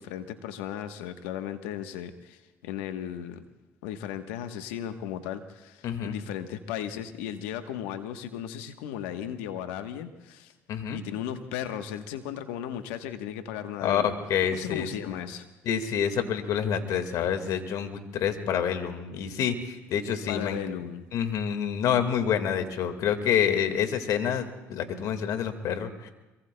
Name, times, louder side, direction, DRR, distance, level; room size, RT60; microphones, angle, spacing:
voice 1, 0.0-3.4 3.8-10.5 10.9-14.1 14.5-15.5 20.3-21.1, left 10 dB, 85° left, 8 dB, 1.2 m, -36 dB
voice 2, 5.8-6.2 10.7-11.0 13.8-14.9 15.6-20.6 21.1-26.1, left 8 dB, 65° left, 7 dB, 1.9 m, -27 dB
26.0 x 23.5 x 2.3 m, 1.1 s
supercardioid pair, 70°, 6 cm